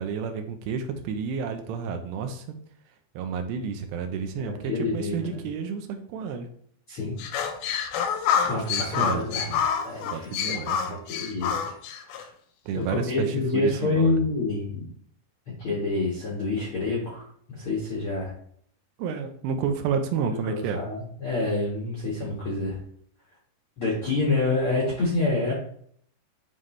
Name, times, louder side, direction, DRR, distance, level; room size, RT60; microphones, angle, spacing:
voice 1, 0.0-2.6 3.2-6.5 8.4-9.3 10.1-11.0 12.7-14.2 19.0-20.8, right 6 dB, 85° right, 6 dB, 2.9 m, -30 dB
voice 2, 4.4-5.4 6.9-7.5 8.5-10.6 10.9-11.8 12.1-12.3 12.7-14.9 15.6-18.3 20.3-22.8 23.8-25.5, left 3 dB, 60° left, -5 dB, 1.4 m, -28 dB
sound 1, 7.2-12.3, left 7 dB, 80° left, 2.3 m, -27 dB
9.2 x 3.8 x 3.2 m, 0.63 s
omnidirectional pair, 4.9 m